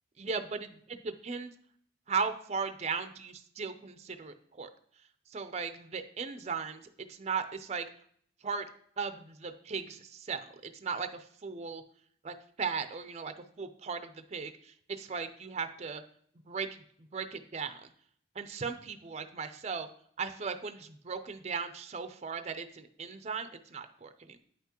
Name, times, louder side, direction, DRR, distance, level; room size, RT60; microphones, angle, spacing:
voice 1, 0.2-1.5 2.1-4.7 5.3-7.9 8.4-8.7 9.0-11.8 12.2-16.0 16.5-16.7 17.1-17.9 18.3-19.9 20.2-24.4, right 5 dB, 35° right, 9 dB, 0.5 m, -37 dB
9.0 x 5.8 x 2.9 m, 0.62 s
head